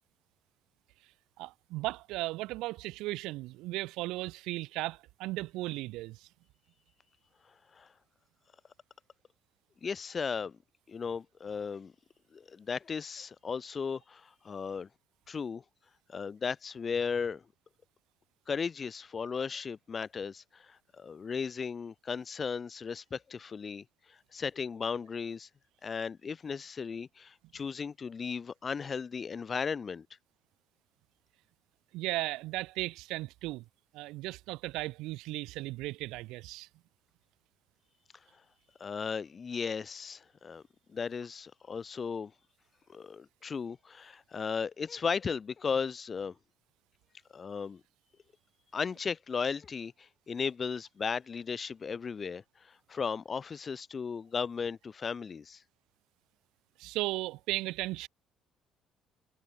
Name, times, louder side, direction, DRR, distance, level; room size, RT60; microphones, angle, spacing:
voice 1, 1.4-6.3 31.9-33.6 33.9-36.7 56.8-58.1, right 19 dB, 70° right, 0.5 m, -36 dB
voice 2, 9.8-10.6 10.9-11.9 12.3-14.9 15.3-15.6 16.1-17.4 18.5-25.5 25.8-30.1 38.8-40.6 40.9-42.3 42.9-46.4 47.3-47.8 48.7-55.6, left 6 dB, 40° left, 0.8 m, -36 dB
hypercardioid pair, 50°, 0 cm